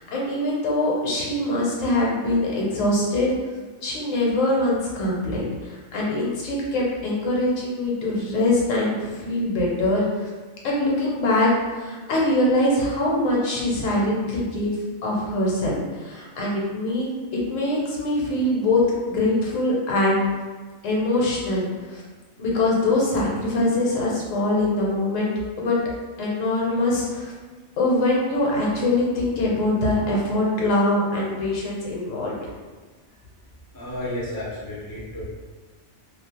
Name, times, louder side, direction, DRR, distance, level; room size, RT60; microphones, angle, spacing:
voice 1, 0.0-3.3 3.8-10.3 10.6-14.7 15.0-18.8 19.1-20.2 20.8-22.0 22.4-25.3 25.6-25.8 26.2-27.3 27.8-32.3, left 1 dB, 70° left, -4 dB, 1.0 m, -23 dB
voice 2, 33.7-35.3, left 1 dB, 35° left, -7 dB, 0.3 m, -32 dB
2.5 x 2.0 x 2.8 m, 1.4 s
omnidirectional pair, 1.4 m